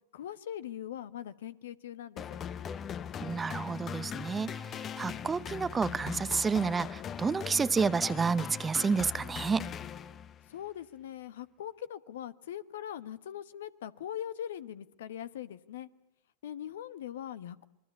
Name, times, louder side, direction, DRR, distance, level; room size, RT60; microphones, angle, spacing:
voice 1, 0.1-2.4 10.5-15.9 16.4-17.7, left 10 dB, 70° left, 15 dB, 1.1 m, -41 dB
sound 1, 2.2-10.5, left 8 dB, 30° left, 1.0 m, -40 dB
voice 2, 3.2-9.7, right 5 dB, 20° right, 17 dB, 0.8 m, -30 dB
26.5 x 21.5 x 8.3 m, 0.94 s
hypercardioid pair, 90°, 0 cm